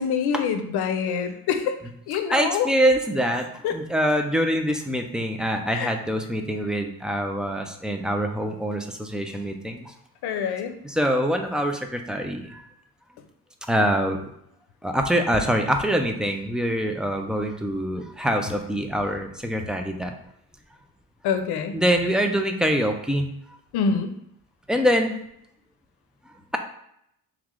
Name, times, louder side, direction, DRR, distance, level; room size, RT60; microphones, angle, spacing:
voice 1, 0.0-1.7 2.1-2.7 3.6-3.8 5.7-5.9 10.2-10.7 21.2-21.8 23.7-24.1, left 6 dB, 85° left, 8 dB, 0.6 m, -25 dB
voice 2, 2.3-9.9 10.8-12.7 13.7-14.2 14.8-20.1 21.7-23.3 24.7-25.1, equal, ahead, 4 dB, 0.3 m, -24 dB
3.5 x 3.1 x 3.7 m, 0.74 s
cardioid pair, 115°, 38 cm